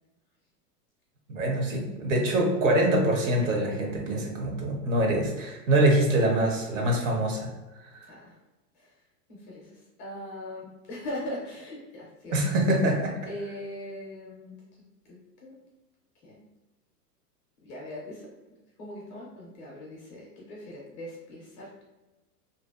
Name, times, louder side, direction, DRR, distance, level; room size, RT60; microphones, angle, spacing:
voice 1, 1.3-7.5 12.3-13.1, right 1 dB, 50° right, 1 dB, 0.8 m, -24 dB
voice 2, 9.3-12.4 12.9-13.0 13.3-14.6 15.1-15.5 16.2-16.4 17.6-18.3 18.8-21.8, left 1 dB, 25° left, -4 dB, 0.5 m, -40 dB
2.7 x 2.2 x 2.3 m, 1.1 s
hypercardioid pair, 120°, 48 cm